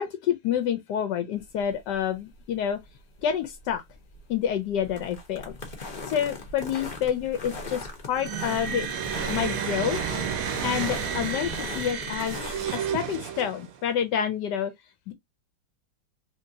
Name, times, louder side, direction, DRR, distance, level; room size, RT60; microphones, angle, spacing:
voice 1, 0.0-2.8 3.2-3.8 4.3-5.5 6.1-8.8 9.3-10.0 10.6-12.4 12.7-14.7 15.1-15.2, left 9 dB, 75° left, 1.0 m, -28 dB
sound 1, 1.4-12.8, left 3 dB, 55° left, 0.5 m, -39 dB
sound 2, 8.1-13.8, right 7 dB, 65° right, 0.8 m, -31 dB
3.2 x 2.7 x 2.6 m
omnidirectional pair, 2.2 m